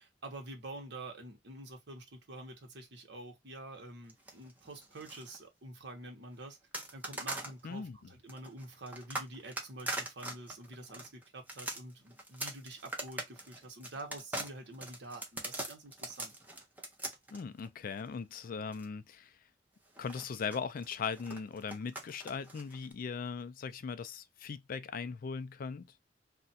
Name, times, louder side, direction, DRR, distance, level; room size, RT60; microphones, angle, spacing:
voice 1, 0.0-6.6 6.9-16.3, right 2 dB, 65° right, 1.0 m, -47 dB
sound 1, 4.1-5.4 6.7-7.6 8.3-18.9 20.0-22.9, right 2 dB, 10° right, 0.7 m, -42 dB
voice 2, 7.6-8.1 17.3-19.3 20.0-25.9, left 5 dB, 50° left, 0.3 m, -39 dB
2.4 x 2.2 x 4.0 m
head